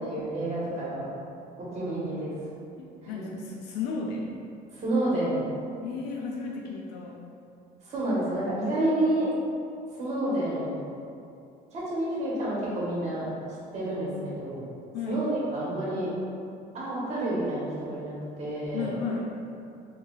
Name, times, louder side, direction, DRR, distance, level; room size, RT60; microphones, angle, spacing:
voice 1, 0.0-1.0 1.6-2.3 3.0-3.3 4.7-5.4 7.8-9.3 10.0-10.8 11.7-13.3 13.7-14.6 15.0-16.1 16.7-18.9, right 1 dB, 40° right, -7 dB, 1.4 m, -29 dB
voice 2, 2.8-4.3 5.8-7.1 14.9-15.2 18.7-19.3, left 4 dB, 85° left, -1 dB, 0.4 m, -34 dB
3.0 x 2.7 x 3.7 m, 2.6 s
cardioid pair, 110°, 17 cm